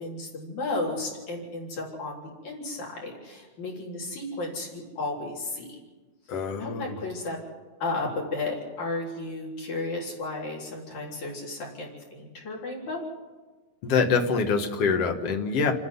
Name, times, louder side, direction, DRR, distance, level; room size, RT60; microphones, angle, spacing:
voice 1, 0.0-5.8 6.6-7.4 7.8-13.0, left 2 dB, 75° left, -3 dB, 5.2 m, -33 dB
voice 2, 6.3-7.0 13.8-15.7, left 5 dB, 55° left, 4 dB, 2.5 m, -25 dB
29.5 x 9.9 x 9.6 m, 1.3 s
omnidirectional pair, 3.4 m